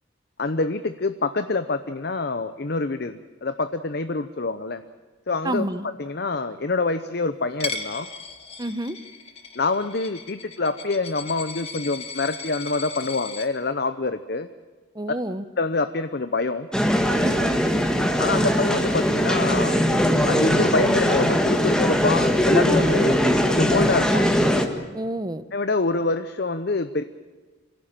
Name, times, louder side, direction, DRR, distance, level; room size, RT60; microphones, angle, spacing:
voice 1, 0.4-4.8 5.3-5.6 6.0-8.1 9.6-14.5 15.6-16.7 18.2-19.8 20.3-23.2 23.5-24.2 25.5-27.0, left 3 dB, 55° left, 10 dB, 0.8 m, -26 dB
voice 2, 5.4-5.9 8.6-9.0 14.9-15.4 17.2-17.5 24.9-25.5, right 1 dB, 20° right, 13 dB, 0.8 m, -29 dB
Coin (dropping), 7.6-13.5, left 4 dB, 30° left, 2.1 m, -36 dB
sound 1, 16.7-24.7, equal, 5° left, 1.6 m, -20 dB
26.0 x 17.0 x 9.0 m, 1.4 s
head